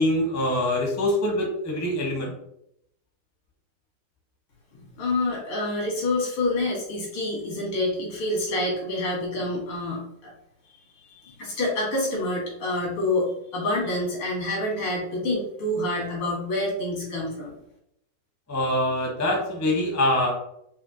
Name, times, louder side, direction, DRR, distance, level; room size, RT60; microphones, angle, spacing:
voice 1, 0.0-2.3 18.5-20.3, left 1 dB, 20° left, -1 dB, 0.4 m, -24 dB
voice 2, 5.0-10.3 11.2-17.5, left 2 dB, 85° left, -3 dB, 2.6 m, -27 dB
5.5 x 2.7 x 2.7 m, 0.76 s
omnidirectional pair, 2.3 m